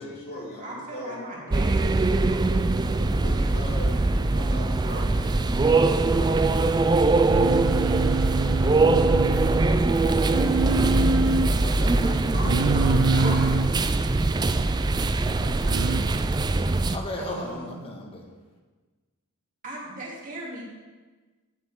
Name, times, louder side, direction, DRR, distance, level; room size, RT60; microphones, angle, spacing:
voice 1, 0.0-1.5 3.0-3.9 4.3-7.6 8.2-10.0, left 1 dB, 45° left, -5 dB, 3.8 m, -42 dB
voice 2, 0.6-3.5 4.0-4.2 12.3-13.6 15.3-17.7 19.6-20.6, right 1 dB, 35° right, -4 dB, 2.8 m, -38 dB
sound 1, 1.5-17.0, right 2 dB, 20° right, 0.4 m, -22 dB
Singing, 7.3-9.7 10.3-11.5 12.4-13.7 15.7-16.0, right 3 dB, 90° right, 0.4 m, -26 dB
voice 3, 11.4-13.5 16.9-18.3, left 1 dB, 25° left, 1 dB, 1.6 m, -37 dB
17.0 x 7.5 x 3.7 m, 1.3 s
head